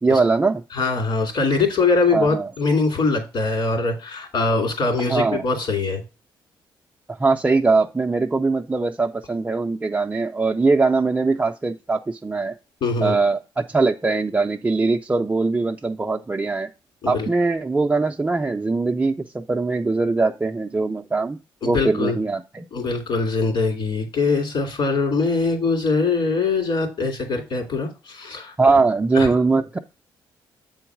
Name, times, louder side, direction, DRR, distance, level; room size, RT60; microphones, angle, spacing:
voice 1, 0.0-0.6 2.1-2.5 5.1-5.4 7.1-12.5 13.0-16.7 17.1-21.4 21.7-22.7 28.6-29.8, right 3 dB, 15° right, 2 dB, 0.4 m, -21 dB
voice 2, 0.7-6.0 12.8-13.2 17.0-17.3 21.6-22.2 22.7-28.5 29.1-29.3, left 3 dB, 65° left, 3 dB, 2.8 m, -22 dB
7.8 x 3.9 x 4.6 m, 0.31 s
cardioid pair, 85°, 9 cm